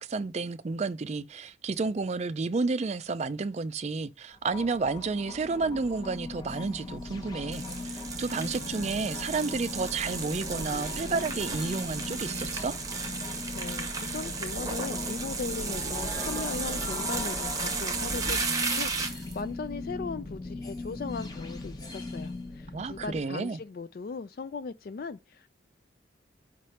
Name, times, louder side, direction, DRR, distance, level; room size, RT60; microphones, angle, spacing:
voice 1, 0.0-12.7 22.7-23.6, right 4 dB, 35° right, 0.4 m, -31 dB
sound 1, 4.3-23.2, left 2 dB, 20° left, 0.8 m, -39 dB
sound 2, 7.5-19.4, right 4 dB, 20° right, 0.8 m, -34 dB
Wind instrument woodwind instrument, 8.4-11.9, left 3 dB, 80° left, 2.1 m, -49 dB
voice 2, 13.6-25.5, left 4 dB, 55° left, 0.3 m, -38 dB
5.1 x 3.3 x 5.6 m
head